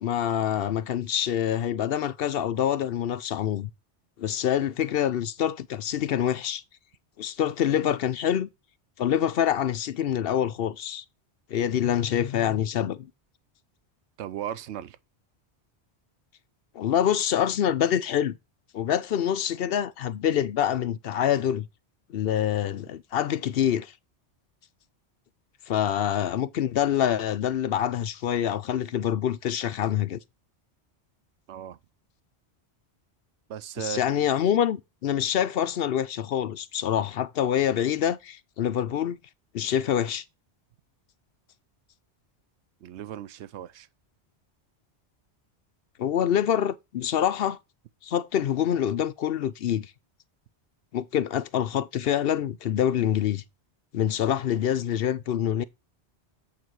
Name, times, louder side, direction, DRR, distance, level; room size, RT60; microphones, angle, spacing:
voice 1, 0.0-3.7 4.2-6.6 7.2-8.5 9.0-11.0 11.5-13.1 16.7-18.4 18.7-21.7 22.1-23.9 25.7-30.2 33.8-39.2 39.5-40.2 46.0-47.6 48.0-49.9 50.9-53.4 53.9-55.6, left 10 dB, 65° left, 0.7 m, -26 dB
voice 2, 14.2-15.0 31.5-31.8 33.5-34.3 42.8-43.9, right 10 dB, 85° right, 0.9 m, -36 dB
8.5 x 4.1 x 4.6 m
omnidirectional pair, 1.1 m